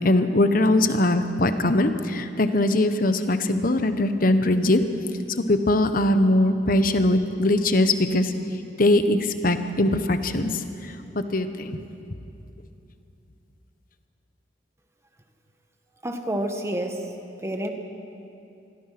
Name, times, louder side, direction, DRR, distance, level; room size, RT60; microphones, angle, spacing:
voice 1, 0.0-4.8 5.5-8.3 8.8-11.8, left 1 dB, 55° left, 9 dB, 1.3 m, -21 dB
voice 2, 16.0-17.0 17.4-17.7, right 1 dB, 15° right, 4 dB, 1.8 m, -28 dB
27.0 x 21.5 x 6.1 m, 2.7 s
head